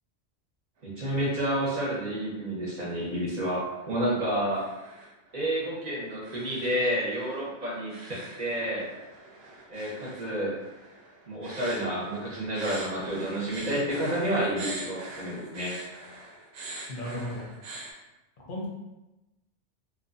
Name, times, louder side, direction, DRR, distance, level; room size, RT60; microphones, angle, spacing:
voice 1, 0.8-4.7 5.3-8.9 9.7-10.5 11.3-15.7, right 1 dB, 40° right, -6 dB, 0.8 m, -30 dB
sound 1, 0.8-1.6 1.9-2.4 2.8-17.9, right 2 dB, 85° right, 0.9 m, -44 dB
voice 2, 16.9-17.5 18.5-18.7, equal, 55° left, -4 dB, 0.8 m, -34 dB
2.6 x 2.2 x 2.5 m, 0.99 s
omnidirectional pair, 1.2 m